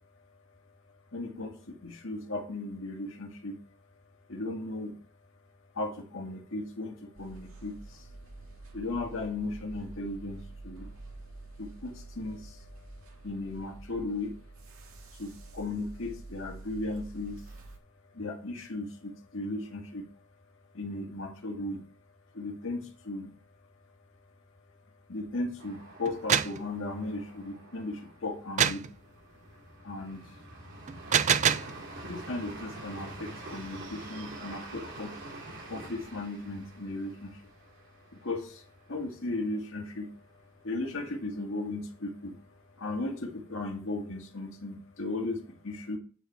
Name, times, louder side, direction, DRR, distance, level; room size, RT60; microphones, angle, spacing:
voice 1, 1.1-3.6 4.3-4.9 5.7-8.1 8.7-10.9 11.6-12.7 13.2-14.4 15.2-17.4 18.1-20.1 20.7-21.8 22.3-23.3 25.1-28.9 29.8-30.3 32.0-35.1 35.7-37.4 38.1-40.1 40.6-42.4 42.8-46.0, left 2 dB, 65° left, 2 dB, 1.9 m, -36 dB
sound 1, 7.1-17.8, right 2 dB, 85° right, 2.1 m, -47 dB
sound 2, 25.6-39.3 39.6-39.7 40.1-40.7, right 2 dB, 60° right, 3.1 m, -46 dB
sound 3, 26.1-26.6 28.6-28.9 30.9-31.7, right 8 dB, 35° right, 0.3 m, -25 dB
9.0 x 5.0 x 4.5 m, 0.39 s
head